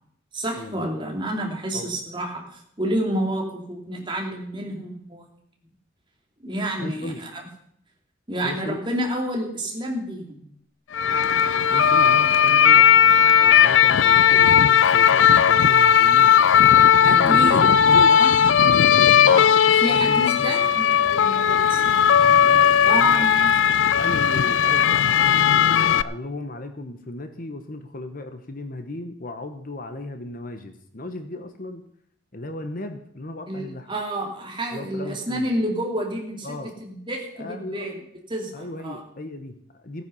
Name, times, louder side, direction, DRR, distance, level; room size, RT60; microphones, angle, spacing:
voice 1, 0.3-5.2 6.4-7.5 8.3-10.5 17.0-17.6 18.1-18.4 19.2-22.4 22.9-23.5 33.5-38.0 38.3-39.0, right 1 dB, 25° right, 0 dB, 2.9 m, -29 dB
voice 2, 6.8-7.2 8.4-8.8 11.7-16.4 17.0-18.4 18.7-19.5 19.8-20.5 21.4-21.7 22.4-23.5 24.0-31.8 32.3-33.9 34.7-35.5 36.4-36.8 37.4-37.9 38.5-40.0, left 2 dB, 45° left, 7 dB, 1.1 m, -35 dB
sound 1, 10.9-26.0, left 8 dB, 70° left, 0.4 m, -16 dB
16.5 x 9.5 x 5.6 m, 0.69 s
head